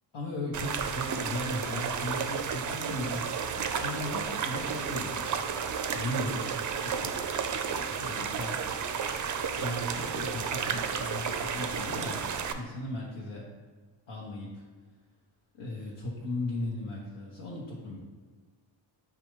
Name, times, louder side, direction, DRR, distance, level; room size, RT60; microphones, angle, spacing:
voice 1, 0.1-3.3 3.6-5.4 5.9-6.4 6.7-8.6 9.4-13.5 14.1-14.6 15.5-18.0, left 1 dB, 65° left, -4 dB, 1.1 m, -37 dB
sound 1, 0.5-12.5, right 6 dB, 40° right, 0.4 m, -32 dB
6.7 x 2.4 x 3.1 m, 1.5 s
cardioid pair, 75°, 48 cm